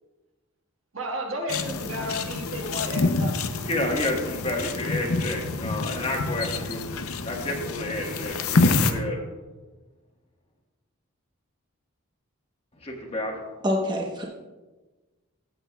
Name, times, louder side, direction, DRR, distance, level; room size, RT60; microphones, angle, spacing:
voice 1, 0.9-3.4, equal, 70° right, 2 dB, 1.5 m, -32 dB
sound 1, 1.5-8.9, left 3 dB, 85° left, 0.7 m, -27 dB
voice 2, 3.6-6.8 7.2-9.2 12.8-13.4, left 1 dB, 30° left, 0 dB, 1.4 m, -30 dB
voice 3, 13.6-14.2, left 1 dB, 20° right, -1 dB, 1.0 m, -25 dB
15.0 x 8.1 x 2.3 m, 1.2 s
head